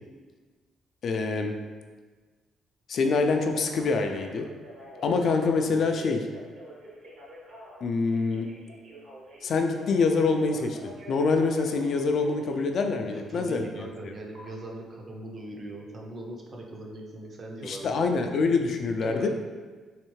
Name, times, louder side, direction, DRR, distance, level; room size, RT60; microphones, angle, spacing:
voice 1, 1.0-1.5 2.9-4.5 5.0-6.2 7.8-8.4 9.4-14.1 17.6-19.3, left 4 dB, 55° left, 4 dB, 0.3 m, -25 dB
Telephone, 3.4-12.8 14.3-14.5, right 1 dB, 65° right, 1.0 m, -48 dB
voice 2, 5.7-6.1 13.0-18.0 19.0-19.3, right 1 dB, 35° right, 0 dB, 0.5 m, -40 dB
3.4 x 3.2 x 3.1 m, 1.4 s
cardioid pair, 135°, 0 cm